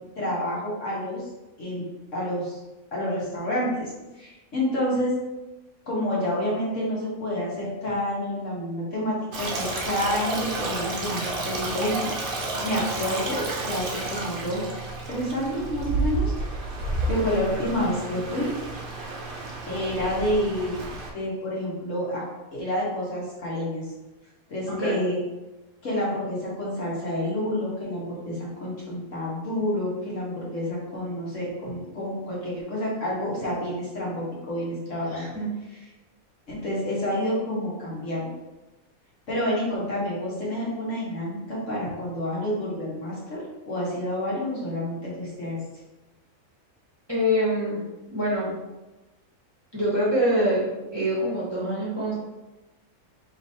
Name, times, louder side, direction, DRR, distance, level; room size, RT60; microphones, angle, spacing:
voice 1, 0.2-1.2 1.6-1.8 2.1-2.6 2.9-5.1 5.9-12.1 12.6-16.6 17.1-18.5 19.7-20.8 21.1-22.2 22.5-23.9 24.5-25.2 25.8-35.3 35.7-35.9 36.5-38.3 39.3-45.6, left 1 dB, 60° left, -6 dB, 1.6 m, -29 dB
Stream, 9.3-21.1, right 2 dB, 50° right, 0.7 m, -31 dB
voice 2, 35.1-35.5 47.1-47.8 48.1-48.5 49.7-50.6 50.9-52.1, equal, 20° right, -8 dB, 1.0 m, -24 dB
4.9 x 3.2 x 2.7 m, 1.1 s
omnidirectional pair, 1.5 m